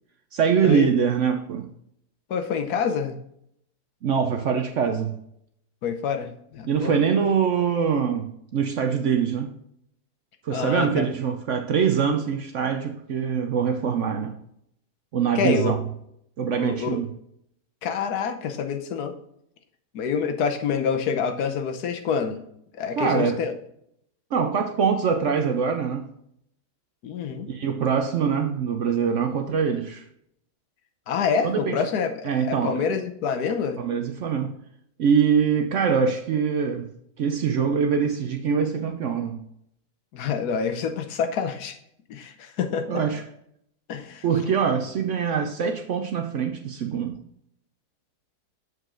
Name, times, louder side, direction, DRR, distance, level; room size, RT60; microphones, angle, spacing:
voice 1, 0.3-1.7 4.0-5.2 6.6-9.5 10.4-14.3 15.1-15.8 16.4-17.1 23.0-23.4 24.3-26.1 27.5-30.0 31.4-31.8 32.2-32.8 33.8-34.5 35.0-36.9 37.2-39.4 42.9-43.2 44.2-47.2, right 7 dB, 65° right, 0.8 m, -23 dB
voice 2, 2.3-3.2 5.8-7.0 10.5-11.1 15.3-15.7 16.6-17.0 17.8-19.1 19.9-22.4 22.7-23.5 27.0-27.5 31.1-33.8 40.1-41.8 42.1-43.0 43.9-44.2, left 6 dB, 75° left, 1.3 m, -27 dB
7.6 x 5.3 x 3.7 m
omnidirectional pair, 1.7 m